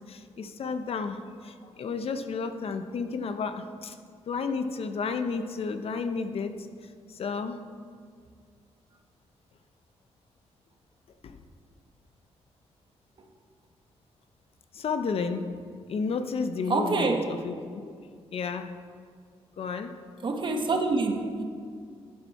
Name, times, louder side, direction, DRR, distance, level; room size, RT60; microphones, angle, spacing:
voice 1, 0.1-4.0 4.3-6.6 7.2-7.6 11.2-11.4 14.7-15.5 15.9-17.5 17.8-17.9 18.3-18.7 19.6-19.9, left 5 dB, 60° left, 9 dB, 0.7 m, -32 dB
voice 2, 16.7-17.2 20.2-21.4, right 3 dB, 45° right, 4 dB, 1.2 m, -26 dB
11.5 x 9.1 x 4.2 m, 2.1 s
cardioid pair, 105°, 11 cm